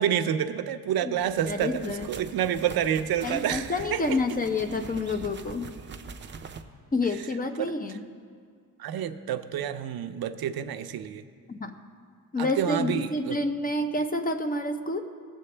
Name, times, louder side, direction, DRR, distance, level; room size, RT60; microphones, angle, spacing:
voice 1, 0.0-4.2 7.6-7.7 8.8-11.2 12.4-13.4, right 9 dB, 85° right, 9 dB, 0.6 m, -28 dB
sound 1, 1.2-6.6, right 5 dB, 30° right, 0.5 m, -43 dB
voice 2, 1.5-2.1 3.2-5.7 6.9-7.9 11.5-11.7 12.3-15.1, left 2 dB, 25° left, 7 dB, 0.6 m, -28 dB
19.5 x 7.7 x 3.3 m, 2.1 s
wide cardioid pair, 160°, 35 cm